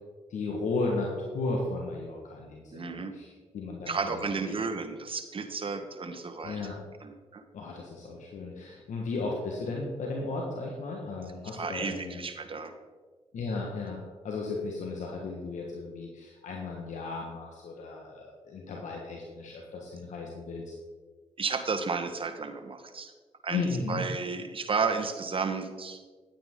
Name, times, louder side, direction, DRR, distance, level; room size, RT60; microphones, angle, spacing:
voice 1, 0.3-4.5 6.4-6.8 7.5-12.2 13.3-14.0 14.2-20.7 23.5-24.0, left 3 dB, 75° left, -1 dB, 1.5 m, -35 dB
voice 2, 2.7-3.1 3.9-6.6 7.0-7.4 11.5-12.7 21.4-23.1 23.4-26.0, right 4 dB, 45° right, 6 dB, 1.3 m, -33 dB
10.0 x 8.9 x 3.8 m, 1.5 s
supercardioid pair, 55°, 13 cm